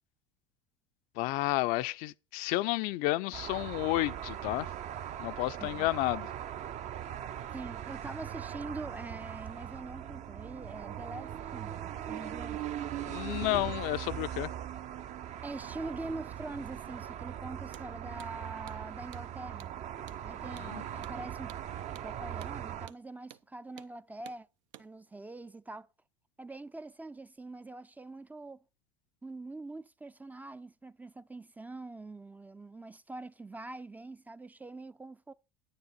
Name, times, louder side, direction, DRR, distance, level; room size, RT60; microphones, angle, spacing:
voice 1, 1.2-4.7 5.2-6.3 13.1-14.5 20.5-20.8, left 19 dB, 60° left, 0.5 m, -31 dB
sound 1, 3.3-22.9, right 10 dB, 45° right, 0.8 m, -40 dB
voice 2, 7.5-12.6 15.4-19.8 20.2-21.5 22.0-24.5 24.8-25.9 26.4-28.6 29.2-35.3, right 2 dB, 10° right, 0.4 m, -44 dB
Hammer, 17.6-17.9 18.2-18.3 18.7-18.8 19.1-19.3 19.6-19.7 20.1-20.2 20.6-20.7 21.0-21.2 21.5-21.6 22.0-22.1 22.4-22.6 22.9-23.0 23.3-23.5 23.8-23.9 24.3-24.4 24.7-24.9, right 13 dB, 75° right, 0.7 m, -52 dB
9.7 x 9.7 x 4.1 m
hypercardioid pair, 90°, 16 cm